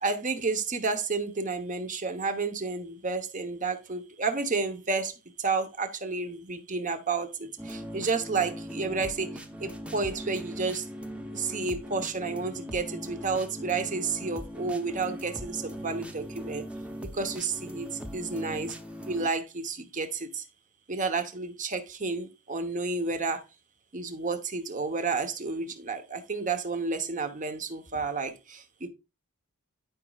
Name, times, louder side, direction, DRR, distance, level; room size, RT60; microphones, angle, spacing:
voice 1, 0.0-10.9 11.3-16.6 17.1-18.8 19.0-20.4 20.9-23.4 23.9-28.9, right 4 dB, 35° right, 1.0 m, -31 dB
sound 1, 7.6-19.3, equal, 5° right, 0.8 m, -40 dB
12.0 x 5.2 x 2.4 m
head